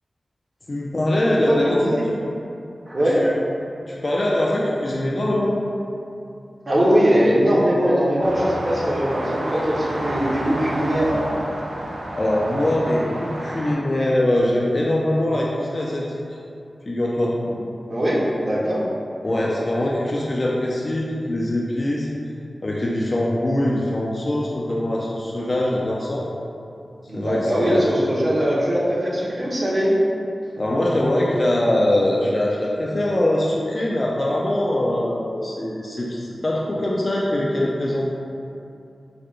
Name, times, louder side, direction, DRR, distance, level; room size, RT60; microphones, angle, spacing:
voice 1, 0.7-1.8 3.2-3.3 3.9-5.6 12.1-16.0 16.9-17.4 19.2-22.1 22.6-26.3 27.1-27.9 30.6-38.0, left 1 dB, 45° left, -4 dB, 0.4 m, -22 dB
voice 2, 1.5-2.0 2.9-3.3 6.7-11.2 17.9-18.8 27.1-29.9, equal, 50° right, -6 dB, 0.8 m, -20 dB
sound 1, 8.2-13.7, right 1 dB, 85° right, 0.4 m, -30 dB
3.9 x 2.2 x 3.1 m, 2.7 s
cardioid pair, 55°, 0 cm